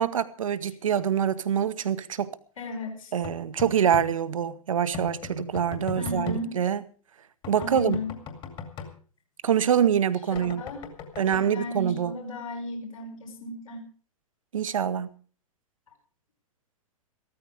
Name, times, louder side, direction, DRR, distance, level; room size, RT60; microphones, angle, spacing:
voice 1, 0.0-2.3 3.1-6.8 7.5-8.0 9.4-10.6 11.2-12.1 14.5-15.1, right 8 dB, 60° right, 1.1 m, -25 dB
voice 2, 2.6-3.1 5.9-6.6 7.5-8.1 10.6-10.9 11.3-13.9, left 1 dB, 65° left, 5.3 m, -35 dB
sound 1, 3.2-4.1 4.9-6.4 7.4-8.9 10.4-11.4, left 5 dB, 25° left, 2.4 m, -37 dB
15.0 x 13.5 x 5.0 m
figure-of-eight pair, 105°, 19 cm